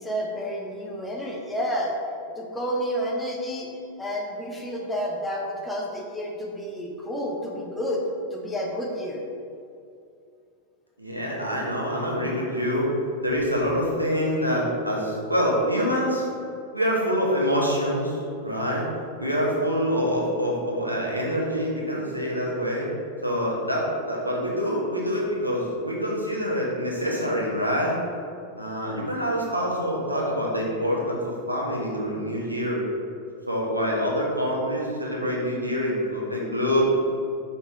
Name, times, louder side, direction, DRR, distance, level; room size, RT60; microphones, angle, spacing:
voice 1, 0.0-2.0 2.4-3.7 4.0-8.0 8.3-9.2, equal, 10° left, -1 dB, 1.0 m, -30 dB
voice 2, 11.0-12.9 13.2-16.3 16.7-18.8 19.2-22.9 23.2-28.0 28.6-32.8 33.5-36.9, equal, 85° right, -3 dB, 1.1 m, -26 dB
5.5 x 4.3 x 4.3 m, 2.4 s
figure-of-eight pair, 90°, 0 cm